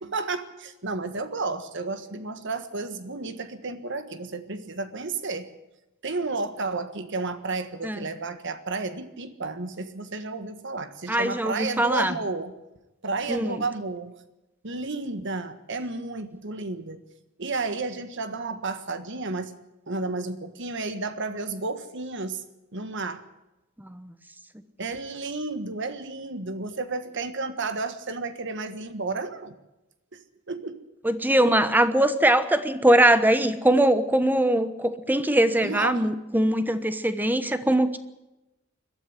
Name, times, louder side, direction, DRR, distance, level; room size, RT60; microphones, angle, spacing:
voice 1, 0.0-5.5 6.0-12.5 13.0-14.1 14.6-17.0 17.4-19.5 19.9-22.4 22.7-23.2 24.8-29.5 30.1-30.2 30.5-30.8 35.6-36.1 37.7-37.8, right 3 dB, 60° right, 10 dB, 1.6 m, -32 dB
voice 2, 11.1-12.2 13.3-13.6 23.8-24.1 31.0-38.0, right 1 dB, 10° right, 11 dB, 1.1 m, -22 dB
21.5 x 13.0 x 9.9 m, 0.97 s
head